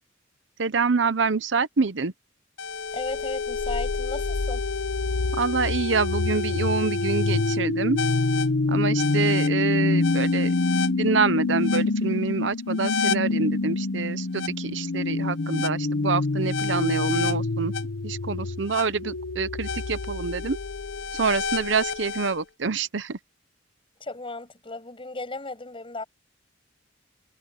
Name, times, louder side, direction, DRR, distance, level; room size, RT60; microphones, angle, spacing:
voice 1, 0.6-2.1 5.3-8.0 8.7-10.5 10.9-17.7 18.0-20.6 21.1-23.2, right 4 dB, 70° right, 0.8 m, -26 dB
sound 1, 2.6-22.3, left 3 dB, 80° left, 0.8 m, -26 dB
voice 2, 2.9-4.6 24.0-26.0, left 2 dB, 30° left, 7.5 m, -35 dB
head